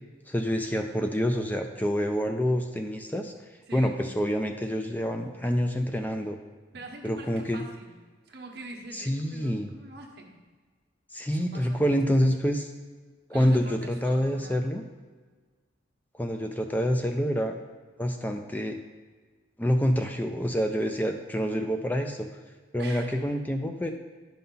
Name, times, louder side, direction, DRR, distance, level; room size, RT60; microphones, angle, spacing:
voice 1, 0.3-3.3 3.7-6.4 7.0-7.6 8.9-9.7 11.1-12.7 13.3-14.8 16.1-17.5 18.0-18.8 19.6-22.3 22.7-23.9, equal, 10° left, 4 dB, 0.4 m, -27 dB
voice 2, 3.7-4.0 6.7-8.0 8.3-10.4 11.3-12.3 13.3-14.7 22.8-23.2, right 2 dB, 60° right, 1 dB, 1.1 m, -45 dB
10.5 x 5.5 x 3.9 m, 1.4 s
head